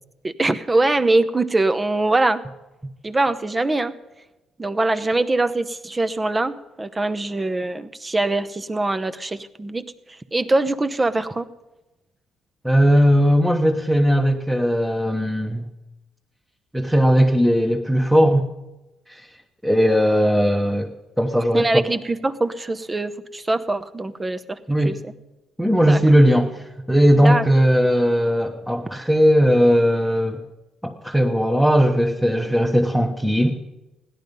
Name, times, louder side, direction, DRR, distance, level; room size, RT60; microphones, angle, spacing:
voice 1, 0.2-2.4 3.0-3.9 4.6-9.8 10.3-11.5 21.5-24.6 24.8-25.1 25.9-26.0 27.2-27.4, right 2 dB, 20° right, 10 dB, 0.8 m, -22 dB
voice 2, 12.6-15.7 16.7-18.5 19.1-19.3 19.6-20.9 21.2-21.6 24.7-25.0 25.6-30.4 30.8-33.6, equal, ahead, 0 dB, 1.2 m, -18 dB
16.5 x 11.0 x 5.3 m, 1.0 s
supercardioid pair, 75°, 0 cm